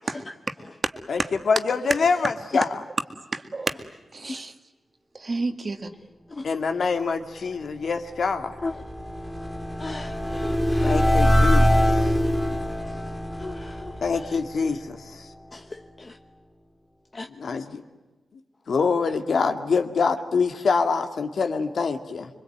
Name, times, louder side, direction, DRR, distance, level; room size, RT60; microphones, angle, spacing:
voice 1, 0.8-1.4 2.6-2.7 3.3-4.5 5.1-5.9, right 3 dB, 35° right, 8 dB, 2.0 m, -30 dB
voice 2, 1.5-2.7 6.4-8.5 10.8-12.1 14.0-15.3 17.3-17.8 18.7-22.3, left 5 dB, 65° left, 7 dB, 2.2 m, -25 dB
sound 1, 7.9-15.1, equal, 5° right, 3.5 m, -23 dB
voice 3, 9.8-11.0 13.4-14.0 15.5-16.2 17.1-17.3, left 3 dB, 30° left, 6 dB, 1.0 m, -37 dB
26.5 x 24.0 x 9.4 m, 1.2 s
wide cardioid pair, 125°, 0 cm